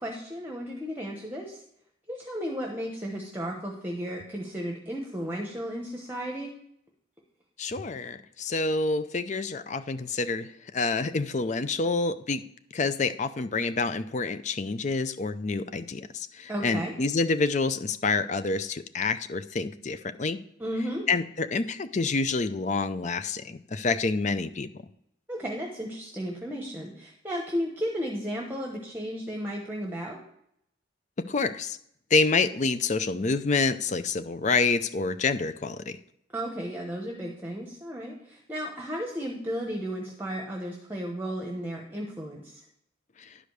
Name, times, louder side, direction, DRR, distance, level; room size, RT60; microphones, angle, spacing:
voice 1, 0.0-1.6 2.1-6.5 16.5-16.9 20.6-21.1 25.3-30.2 36.3-42.6, equal, 10° right, 0 dB, 1.0 m, -34 dB
voice 2, 7.6-10.5 10.7-12.4 12.7-20.4 21.1-24.7 31.3-31.8 32.1-36.0, left 3 dB, 40° left, 12 dB, 0.5 m, -27 dB
11.0 x 5.1 x 6.5 m, 0.73 s
head